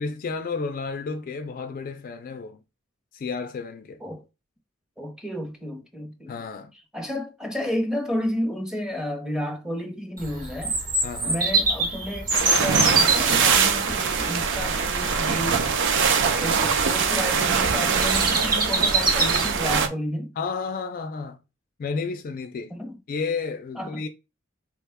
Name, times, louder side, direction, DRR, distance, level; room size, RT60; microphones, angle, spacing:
voice 1, 0.0-2.6 3.1-4.0 6.3-6.7 11.0-11.4 20.4-21.4 21.8-22.7 23.1-24.1, left 4 dB, 45° left, 0.3 m, -31 dB
voice 2, 5.0-6.3 6.9-10.8 11.3-15.7 16.2-20.3 22.7-23.0 23.8-24.0, equal, 5° right, 0.7 m, -31 dB
Bird vocalization bird call bird song, 10.2-19.8, right 3 dB, 45° right, 1.1 m, -26 dB
sound 1, 12.3-19.9, right 6 dB, 65° right, 0.5 m, -23 dB
4.6 x 2.2 x 3.4 m
head